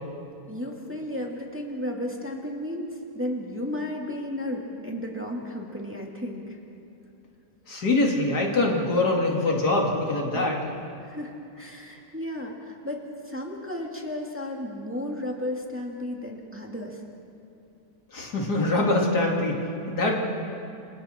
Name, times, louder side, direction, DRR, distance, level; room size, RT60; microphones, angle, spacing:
voice 1, 0.5-6.6 10.3-10.5 11.0-17.0, left 1 dB, 10° right, -1 dB, 2.3 m, -34 dB
voice 2, 7.7-10.7 18.1-20.1, left 2 dB, 75° left, -1 dB, 3.1 m, -24 dB
29.0 x 26.0 x 4.5 m, 2.6 s
omnidirectional pair, 1.7 m